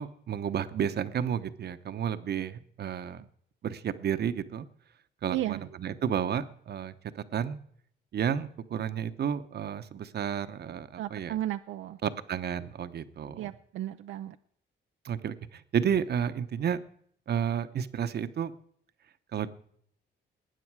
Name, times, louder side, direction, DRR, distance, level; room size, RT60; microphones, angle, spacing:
voice 1, 0.0-3.2 3.6-4.6 5.2-7.6 8.1-11.4 12.0-13.5 15.0-16.8 17.3-18.5 19.3-19.5, right 8 dB, 55° right, 12 dB, 1.0 m, -31 dB
voice 2, 5.3-5.6 11.0-12.0 13.4-14.4, right 13 dB, 80° right, 8 dB, 0.6 m, -34 dB
20.0 x 9.2 x 4.8 m, 0.64 s
cardioid pair, 90°, 20 cm